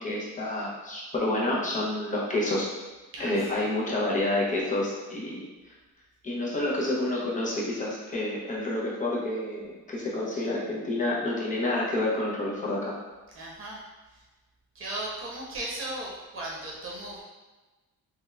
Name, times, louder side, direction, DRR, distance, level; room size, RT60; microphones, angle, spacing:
voice 1, 0.0-2.7 3.2-5.5 6.2-13.0, left 1 dB, 25° left, -5 dB, 0.7 m, -29 dB
voice 2, 13.3-13.8 14.7-17.2, right 1 dB, 40° right, -5 dB, 0.9 m, -36 dB
3.5 x 3.2 x 2.3 m, 1.2 s
cardioid pair, 165°, 33 cm